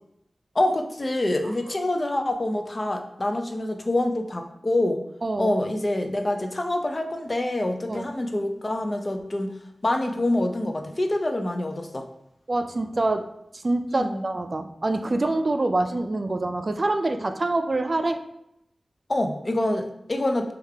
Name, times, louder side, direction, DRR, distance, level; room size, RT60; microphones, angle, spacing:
voice 1, 0.5-5.0 5.4-9.5 9.8-12.1 13.9-14.2 19.1-20.5, left 1 dB, 40° left, 4 dB, 0.4 m, -26 dB
voice 2, 5.2-5.5 7.9-8.1 12.5-18.2, right 2 dB, 50° right, 8 dB, 0.3 m, -26 dB
3.2 x 2.4 x 3.3 m, 0.80 s
cardioid pair, 45°, 0 cm